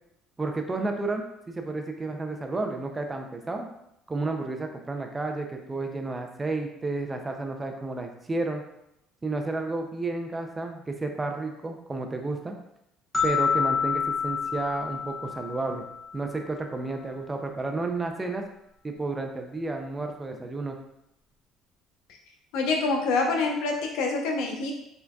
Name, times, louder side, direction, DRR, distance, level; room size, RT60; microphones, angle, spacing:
voice 1, 0.4-3.7 4.1-8.6 9.2-12.6 13.2-15.8 16.1-18.4 18.8-20.8, right 3 dB, 15° right, 4 dB, 0.4 m, -31 dB
sound 1, 13.1-16.3, left 6 dB, 5° left, 1.0 m, -28 dB
voice 2, 22.5-24.7, left 3 dB, 85° left, 1 dB, 0.8 m, -26 dB
4.6 x 3.8 x 2.3 m, 0.82 s
cardioid pair, 145°, 0 cm